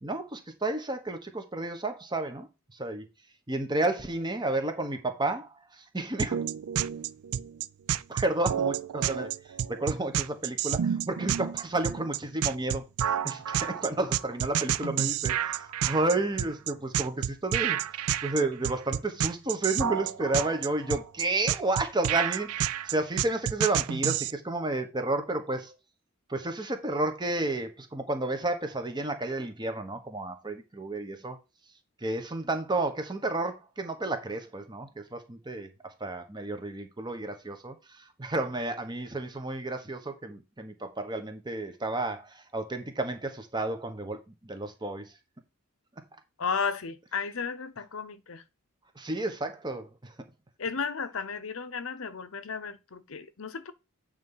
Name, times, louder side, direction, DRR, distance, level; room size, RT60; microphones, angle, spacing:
voice 1, 0.0-2.5 2.7-3.1 3.5-6.4 8.1-17.9 18.2-25.7 26.3-31.4 32.0-45.1 48.9-50.2, right 2 dB, 20° right, 1.2 m, -31 dB
sound 1, 6.2-24.3, right 9 dB, 90° right, 0.4 m, -29 dB
voice 2, 46.4-48.4 50.6-53.7, left 5 dB, 65° left, 0.8 m, -34 dB
8.8 x 3.4 x 5.6 m
head